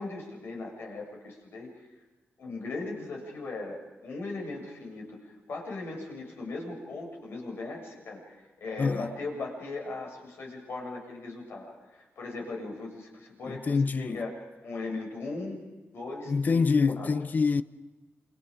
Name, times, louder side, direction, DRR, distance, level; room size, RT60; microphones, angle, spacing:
voice 1, 0.0-1.9 2.4-5.2 5.5-15.6 15.9-17.1, left 3 dB, 70° left, 7.3 m, -38 dB
voice 2, 8.8-9.1 13.5-14.3 16.3-17.6, left 4 dB, 45° left, 0.9 m, -26 dB
28.5 x 27.0 x 5.1 m
wide cardioid pair, 110°, 4 cm